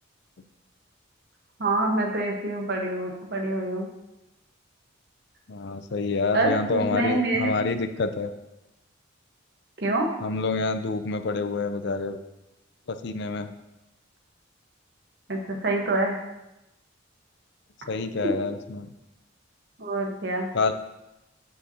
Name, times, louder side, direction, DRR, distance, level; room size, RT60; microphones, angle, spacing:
voice 1, 1.6-3.9 6.3-7.5 9.8-10.1 15.3-16.2 19.8-20.5, right 2 dB, 55° right, 1 dB, 1.3 m, -26 dB
voice 2, 5.5-8.3 10.2-12.2 12.9-13.5 17.9-18.9 20.5-20.7, left 3 dB, 60° left, 10 dB, 0.5 m, -27 dB
12.5 x 5.7 x 2.9 m, 0.93 s
head